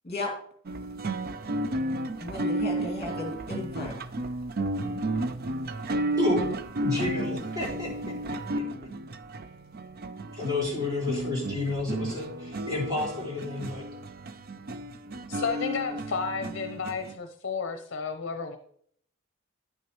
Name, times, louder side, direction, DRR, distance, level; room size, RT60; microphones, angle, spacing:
sound 1, 0.7-17.1, right 1 dB, 45° right, 0.5 m, -33 dB
voice 1, 2.2-3.9, left 2 dB, 30° left, 0 dB, 2.4 m, -34 dB
voice 2, 6.8-7.9 8.3-8.6 10.4-13.8, left 2 dB, 20° right, -5 dB, 4.8 m, -30 dB
voice 3, 15.3-18.6, left 5 dB, 60° left, 6 dB, 0.8 m, -32 dB
10.5 x 9.2 x 3.0 m, 0.63 s
head